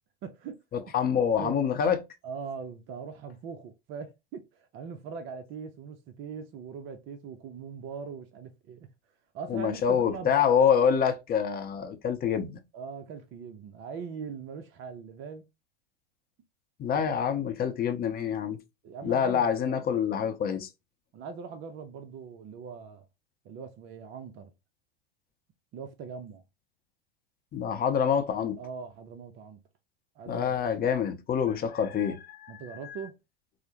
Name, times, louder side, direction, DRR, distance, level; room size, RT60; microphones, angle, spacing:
voice 1, 0.2-0.6 1.4-1.6 2.2-8.9 9.3-10.4 12.7-15.5 16.9-17.2 18.8-19.9 21.1-23.1 23.4-24.5 25.7-26.4 28.6-29.6 30.2-30.7 32.5-33.1, right 6 dB, 40° right, 0.6 m, -41 dB
voice 2, 0.9-2.0 9.5-12.6 16.8-18.6 19.0-20.7 27.5-28.6 30.3-32.8, left 7 dB, 30° left, 0.7 m, -26 dB
4.6 x 2.0 x 2.9 m
hypercardioid pair, 95°, 31 cm